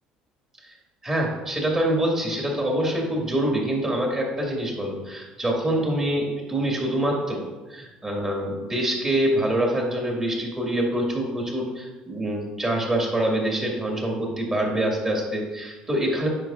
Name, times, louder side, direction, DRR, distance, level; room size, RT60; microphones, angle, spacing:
voice 1, 1.0-7.4 7.7-16.3, right 1 dB, 20° right, -1 dB, 1.9 m, -25 dB
9.0 x 5.1 x 2.4 m, 1.2 s
supercardioid pair, 90°, 2 cm